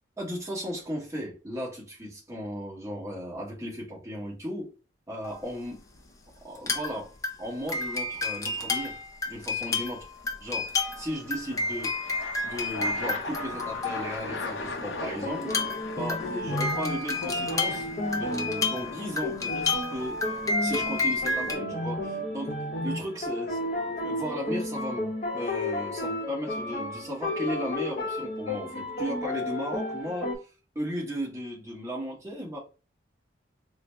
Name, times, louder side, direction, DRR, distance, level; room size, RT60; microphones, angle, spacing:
voice 1, 0.2-4.7 5.1-5.8 6.4-7.1 7.4-9.0 9.3-10.1 10.4-12.0 12.4-15.5 15.9-20.2 20.6-22.6 22.8-30.5 30.7-32.6, equal, 15° right, 1.1 m, -36 dB
sound 1, 5.2-5.4 6.6-7.0 7.2-14.5 15.4-21.6, left 3 dB, 15° left, 0.4 m, -31 dB
sound 2, 5.8-6.3 10.1-24.7, left 3 dB, 70° left, 0.6 m, -41 dB
sound 3, 15.0-30.4, left 1 dB, 40° left, 0.8 m, -33 dB
3.8 x 2.1 x 3.3 m
head